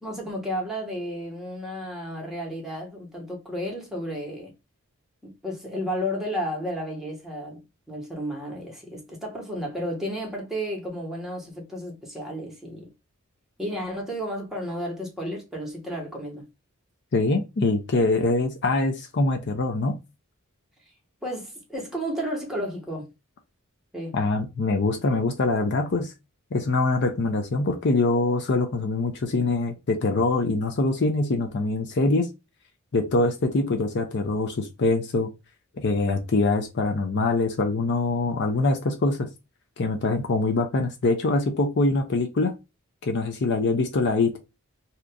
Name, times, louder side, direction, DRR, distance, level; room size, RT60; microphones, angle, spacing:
voice 1, 0.0-4.5 5.2-7.6 7.9-12.9 13.6-16.4 21.2-23.1 23.9-24.2, equal, ahead, 1.1 m, -32 dB
voice 2, 17.1-20.0 24.1-26.1 26.5-32.3 32.9-35.3 35.8-39.3 39.8-42.5 43.0-44.3, left 3 dB, 55° left, 0.5 m, -24 dB
2.9 x 2.5 x 3.4 m
head